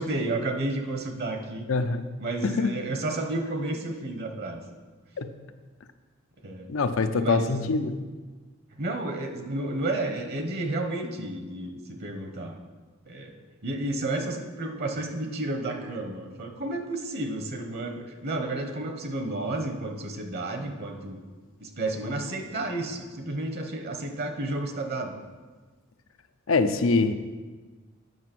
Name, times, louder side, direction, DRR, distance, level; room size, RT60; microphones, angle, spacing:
voice 1, 0.0-1.7 2.2-4.6 6.4-6.7 7.2-7.5 8.8-12.5 13.1-13.3 13.6-21.2 21.6-25.1, right 2 dB, 50° right, 5 dB, 1.0 m, -31 dB
voice 2, 1.7-2.1 2.4-2.7 5.2-5.3 6.7-7.9 26.5-27.1, left 3 dB, 75° left, 9 dB, 0.6 m, -24 dB
9.4 x 5.9 x 6.1 m, 1.3 s
head